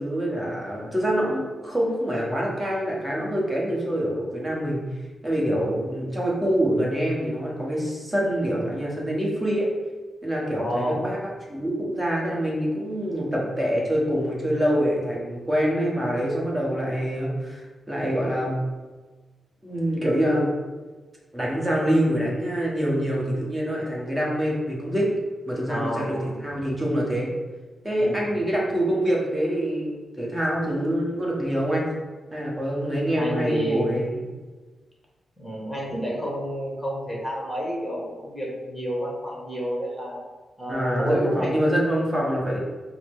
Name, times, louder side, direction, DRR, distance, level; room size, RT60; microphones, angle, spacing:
voice 1, 0.0-4.8 5.2-9.7 10.2-11.2 11.5-17.6 17.9-18.6 19.6-20.5 21.3-25.1 25.5-27.3 27.8-31.9 32.3-34.2 40.7-42.6, equal, 15° right, -4 dB, 1.1 m, -25 dB
voice 2, 10.5-11.0 25.7-26.4 28.0-28.4 33.1-34.1 35.4-40.2 40.6-41.6, equal, 5° left, -4 dB, 1.4 m, -29 dB
4.8 x 2.0 x 3.6 m, 1.3 s
cardioid pair, 90°, 0 cm